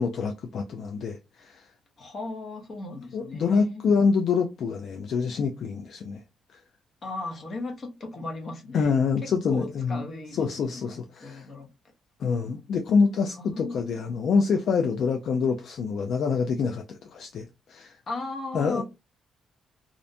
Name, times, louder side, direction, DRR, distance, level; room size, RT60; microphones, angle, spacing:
voice 1, 0.0-1.7 3.1-6.2 8.7-10.0 10.4-11.5 12.2-17.9 18.5-18.8, left 5 dB, 65° left, 0.3 m, -26 dB
voice 2, 2.0-3.9 7.0-8.9 9.2-11.7 13.4-14.0 18.1-18.8, left 2 dB, 45° left, 0.8 m, -37 dB
2.5 x 2.1 x 2.6 m
cardioid pair, 90°, 0 cm